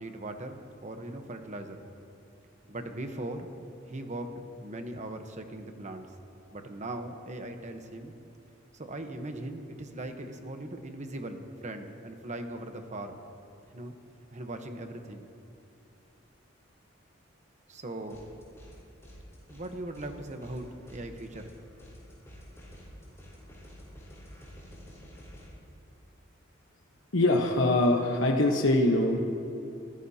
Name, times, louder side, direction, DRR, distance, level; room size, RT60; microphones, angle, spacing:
voice 1, 0.0-1.8 2.7-3.5 3.9-6.1 6.5-8.1 8.7-13.2 13.7-13.9 14.3-15.3 17.7-18.2 19.5-21.5, right 1 dB, 40° right, 6 dB, 1.0 m, -39 dB
sound 1, 18.1-18.8 19.0-25.5, equal, 15° left, 4.1 m, -50 dB
voice 2, 27.1-29.2, left 2 dB, 80° left, 1 dB, 1.1 m, -23 dB
24.0 x 15.0 x 2.9 m, 2.6 s
head